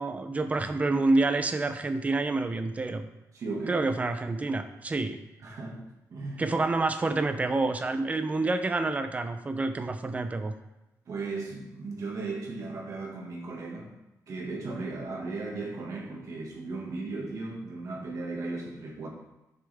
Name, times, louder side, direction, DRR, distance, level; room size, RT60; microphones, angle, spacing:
voice 1, 0.0-3.1 3.7-5.2 6.4-10.5, right 3 dB, 25° right, 8 dB, 0.6 m, -28 dB
voice 2, 3.3-3.8 5.4-5.8 6.1-6.4 11.1-13.9 14.3-19.1, right 3 dB, 55° right, -3 dB, 1.9 m, -36 dB
9.6 x 6.8 x 3.6 m, 0.96 s
wide cardioid pair, 150°, 6 cm